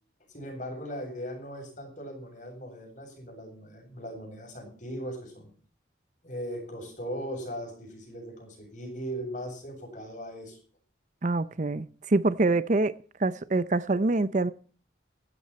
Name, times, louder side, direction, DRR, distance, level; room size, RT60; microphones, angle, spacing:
voice 1, 0.3-5.5 6.2-10.6, equal, 40° left, 7.8 m, -39 dB
voice 2, 11.2-12.9 13.2-14.5, right 2 dB, 40° right, 0.6 m, -25 dB
16.0 x 13.0 x 4.3 m
head